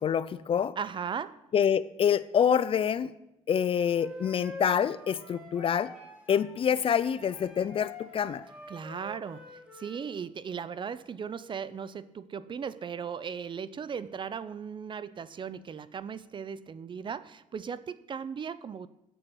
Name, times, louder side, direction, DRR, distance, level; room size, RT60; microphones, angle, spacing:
voice 1, 0.0-0.8 1.5-3.1 3.5-5.9 6.3-8.4, left 8 dB, 40° left, 17 dB, 0.4 m, -26 dB
voice 2, 0.8-1.4 8.7-18.9, right 7 dB, 35° right, 16 dB, 0.5 m, -37 dB
Wind instrument woodwind instrument, 3.7-6.5 6.9-10.0, left 2 dB, 10° right, 2.6 m, -46 dB
7.4 x 6.8 x 7.0 m, 0.88 s
cardioid pair, 95°, 14 cm